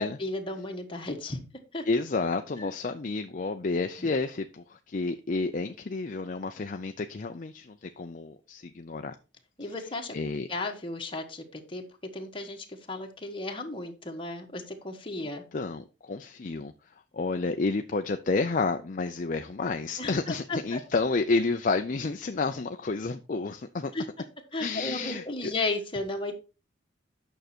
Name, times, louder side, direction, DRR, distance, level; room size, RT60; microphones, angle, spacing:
voice 1, 0.0-1.4 1.7-1.9 2.6-2.7 4.0-4.1 9.6-10.1 10.5-11.8 12.1-15.4 20.0-20.8 23.9-24.0 24.5-26.4, left 2 dB, 30° left, 2 dB, 1.7 m, -34 dB
voice 2, 1.8-9.2 10.1-10.5 15.5-23.9 24.6-25.5, left 3 dB, 45° left, 7 dB, 0.5 m, -30 dB
9.2 x 6.4 x 4.4 m, 0.32 s
head